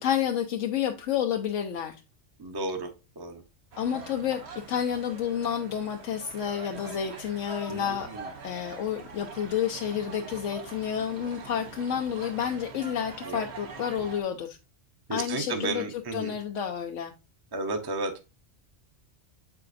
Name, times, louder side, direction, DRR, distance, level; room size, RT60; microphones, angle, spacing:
voice 1, 0.0-2.0 3.8-8.1 8.4-14.6 15.1-15.8 16.1-17.1, left 9 dB, 85° left, 1.0 m, -30 dB
voice 2, 2.4-2.9 3.2-3.4 7.7-8.3 13.3-13.4 15.1-16.3 17.5-18.2, right 3 dB, 25° right, 0.7 m, -33 dB
sound 1, 3.7-14.2, right 4 dB, 65° right, 1.2 m, -44 dB
7.6 x 4.9 x 2.5 m
omnidirectional pair, 1.2 m